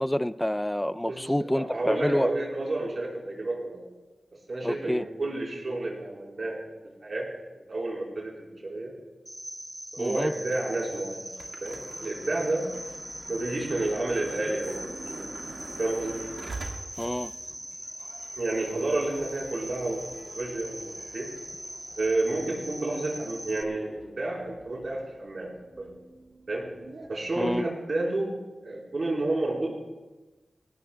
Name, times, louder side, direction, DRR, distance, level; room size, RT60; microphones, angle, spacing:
voice 1, 0.0-2.3 4.6-5.0 10.0-10.3 17.0-17.3 27.4-27.6, left 1 dB, 10° left, 15 dB, 0.4 m, -28 dB
voice 2, 1.1-3.9 4.3-6.6 7.0-7.3 7.5-8.9 9.9-11.3 11.6-12.7 13.3-15.3 15.8-16.2 18.4-21.3 22.0-25.5 25.8-25.9 26.5-26.7 27.1-28.3 28.6-29.7, right 2 dB, 60° right, -3 dB, 4.2 m, -30 dB
Cricket, 9.3-23.6, equal, 5° right, 0.9 m, -41 dB
sound 1, 10.0-27.1, right 3 dB, 85° right, 1.8 m, -46 dB
20.0 x 17.5 x 2.3 m, 1.2 s
wide cardioid pair, 70°, 0 cm